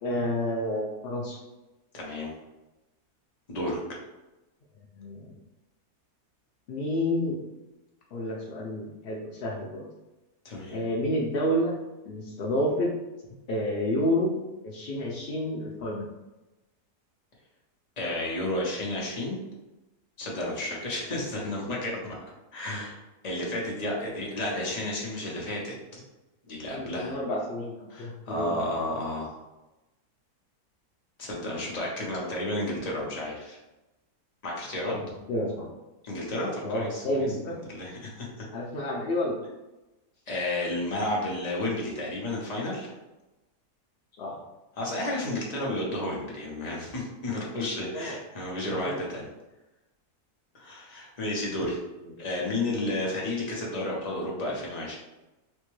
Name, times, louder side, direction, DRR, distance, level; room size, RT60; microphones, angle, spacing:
voice 1, 0.0-1.4 4.8-5.3 6.7-7.4 8.1-9.8 10.7-11.8 12.0-12.9 13.5-14.4 14.6-16.0 26.7-28.5 35.0-35.7 36.6-37.6 38.5-39.4 44.2-44.4 47.9-48.2 48.8-49.0 52.2-52.3, left 1 dB, 80° left, -2 dB, 0.5 m, -29 dB
voice 2, 1.9-2.3 3.5-3.8 10.4-10.8 18.0-19.4 20.2-22.2 22.5-23.0 23.2-25.7 26.5-27.2 27.9-29.4 31.2-33.6 34.4-35.0 36.0-38.4 40.3-42.9 44.8-49.2 50.5-51.8 52.2-55.0, left 1 dB, 35° left, -3 dB, 0.7 m, -32 dB
4.4 x 2.1 x 3.0 m, 1.0 s
omnidirectional pair, 1.6 m